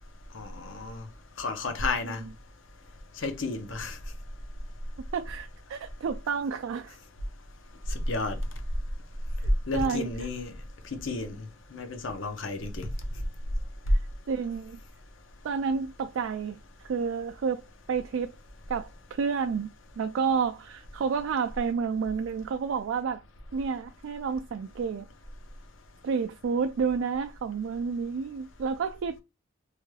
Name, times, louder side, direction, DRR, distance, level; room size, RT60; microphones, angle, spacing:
voice 1, 0.3-1.0 1.4-2.2 3.2-4.0 7.9-8.4 9.7-10.5 11.0-11.4 11.7-12.9, left 3 dB, 75° left, 0.7 m, -32 dB
voice 2, 5.0-7.0 9.4-10.1 13.9-14.0 14.3-14.8 15.4-16.6 16.8-17.6 17.9-18.3 18.7-19.7 20.0-23.2 23.5-25.1 26.0-29.2, right 6 dB, 75° right, 0.3 m, -30 dB
3.3 x 3.2 x 2.2 m
head